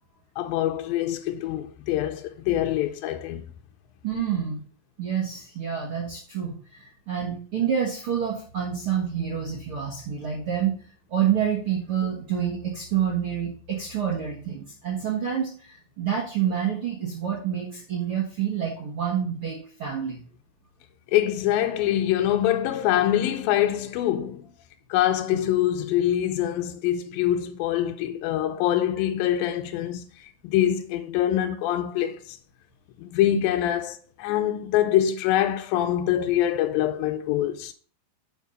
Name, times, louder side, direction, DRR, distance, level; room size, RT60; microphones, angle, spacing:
voice 1, 0.4-3.5 21.1-24.5 24.9-32.4 33.0-37.7, left 12 dB, 85° left, 2.1 m, -24 dB
voice 2, 4.0-4.6 5.0-10.7 11.1-20.2 33.3-33.4, right 8 dB, 90° right, 1.2 m, -28 dB
8.2 x 4.5 x 5.1 m
omnidirectional pair, 4.7 m